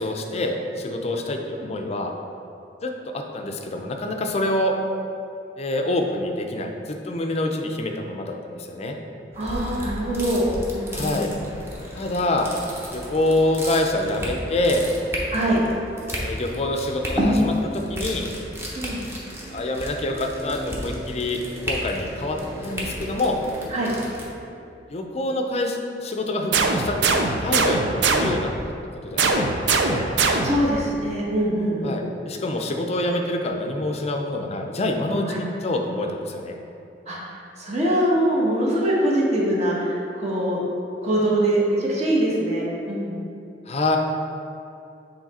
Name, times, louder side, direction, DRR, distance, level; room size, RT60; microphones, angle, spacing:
voice 1, 0.0-2.1 2.8-4.8 5.6-9.0 10.9-11.3 11.9-12.5 12.9-14.9 16.2-18.3 19.5-21.4 21.7-23.4 24.9-28.5 29.0-30.1 31.8-36.6 43.7-44.0, left 1 dB, 35° left, 3 dB, 0.5 m, -26 dB
sound 1, 9.3-24.2, equal, 15° right, 0.8 m, -31 dB
voice 2, 9.4-10.4 10.7-11.3 15.3-15.6 18.8-19.1 23.7-23.9 30.4-32.0 35.3-35.4 37.1-37.2 37.6-40.6 41.0-43.2, right 1 dB, 40° right, -5 dB, 1.2 m, -23 dB
sound 2, 26.5-28.6 29.2-30.7, right 4 dB, 75° right, 0.5 m, -22 dB
7.2 x 3.2 x 4.2 m, 2.6 s
head